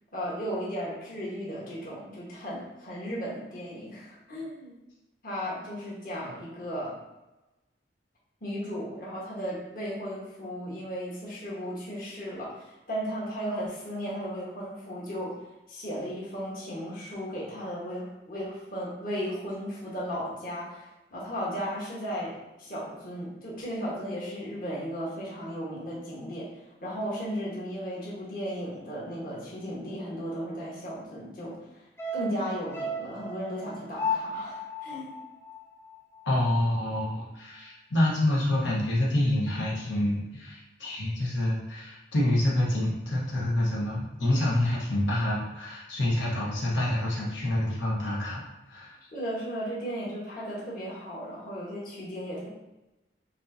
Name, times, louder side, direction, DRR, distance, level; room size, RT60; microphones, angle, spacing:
voice 1, 0.1-4.8 5.2-7.0 8.4-15.4 15.7-26.5 26.8-31.6 32.1-35.2 49.1-52.5, equal, 50° left, -6 dB, 1.3 m, -35 dB
sound 1, 32.0-36.4 36.7-36.8, left 2 dB, 15° left, 0.5 m, -35 dB
voice 2, 36.2-49.0, left 1 dB, 85° left, -5 dB, 1.1 m, -27 dB
6.4 x 2.8 x 2.7 m, 0.99 s
head